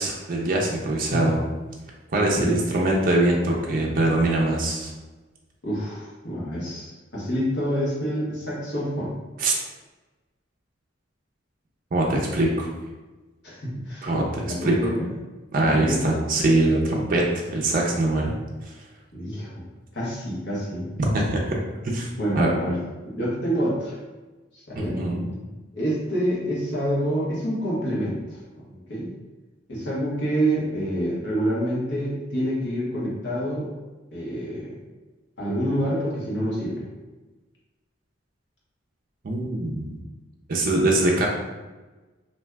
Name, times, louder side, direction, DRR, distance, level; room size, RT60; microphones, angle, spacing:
voice 1, 0.0-1.4 2.1-4.9 9.4-9.5 11.9-12.7 14.0-14.8 15.5-17.2 17.5-18.3 21.0-21.6 21.9-22.1 22.4-22.5 24.8-25.3 39.2-40.0 40.5-41.3, right 2 dB, 45° right, -2 dB, 0.5 m, -23 dB
voice 2, 2.1-2.6 5.6-9.1 13.4-14.1 14.4-15.1 15.5-16.1 19.1-19.5 19.9-20.9 22.2-22.8 23.0-24.0 24.5-25.0 25.7-28.4 28.7-29.1 29.7-33.7 34.1-34.8 35.4-36.8, equal, 60° left, -6 dB, 1.0 m, -27 dB
2.6 x 2.3 x 3.2 m, 1.2 s
head